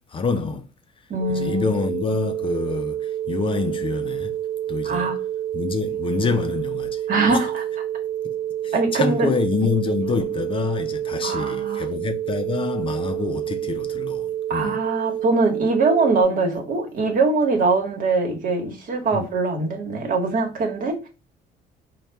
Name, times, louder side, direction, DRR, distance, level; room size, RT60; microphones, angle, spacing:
voice 1, 0.1-0.7 1.3-4.3 4.7-5.2 5.5-7.5 8.2-8.4 8.6-14.8 19.1-19.3, left 5 dB, 30° left, 0.5 m, -27 dB
voice 2, 1.1-1.6 4.8-5.2 7.1-7.6 8.7-9.3 11.2-11.9 14.5-21.1, right 3 dB, 55° right, 1.2 m, -22 dB
sound 1, 1.2-16.2, right 11 dB, 75° right, 0.7 m, -28 dB
4.1 x 2.3 x 3.4 m
cardioid pair, 110°, 17 cm